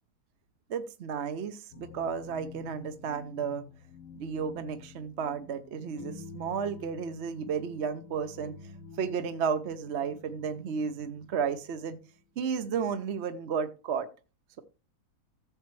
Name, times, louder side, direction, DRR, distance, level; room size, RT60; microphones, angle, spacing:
voice 1, 0.7-3.7 4.1-8.6 9.0-12.0 12.4-14.1, right 6 dB, 50° right, 9 dB, 0.9 m, -33 dB
sound 1, 1.7-12.4, left 5 dB, 60° left, 1.2 m, -49 dB
14.5 x 7.1 x 3.2 m, 0.34 s
omnidirectional pair, 1.7 m